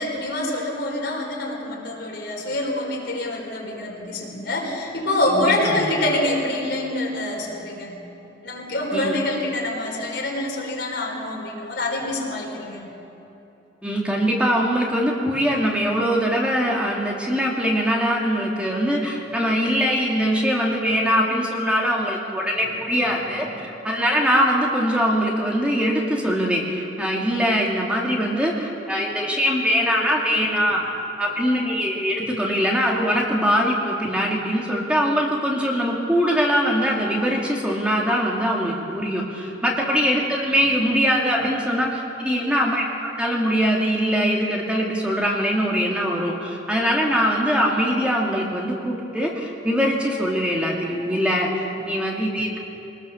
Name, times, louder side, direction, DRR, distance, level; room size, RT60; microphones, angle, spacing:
voice 1, 0.0-8.0 8.4-12.9 32.2-32.4, left 1 dB, 65° left, -1 dB, 4.4 m, -26 dB
voice 2, 5.3-5.9 8.9-9.2 13.8-30.8 31.2-42.8 43.2-52.6, equal, 5° right, -2 dB, 2.5 m, -22 dB
24.5 x 19.5 x 7.1 m, 2.9 s
head